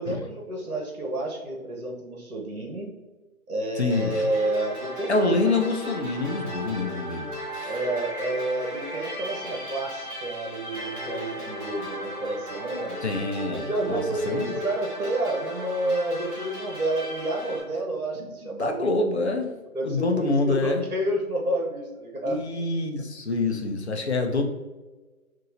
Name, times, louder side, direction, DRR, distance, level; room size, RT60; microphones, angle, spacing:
voice 1, 0.0-2.9 3.5-5.3 7.6-13.0 13.5-18.7 19.3-19.5 19.7-22.4, right 1 dB, 70° right, 0 dB, 1.2 m, -29 dB
voice 2, 3.8-4.3 5.1-7.7 13.0-14.0 14.3-14.5 18.6-19.5 19.8-20.8 22.3-24.4, left 2 dB, 50° left, 3 dB, 0.7 m, -26 dB
sound 1, 3.9-17.6, equal, 25° right, 1.5 m, -36 dB
5.6 x 2.7 x 2.6 m, 1.2 s
figure-of-eight pair, 160°, 44 cm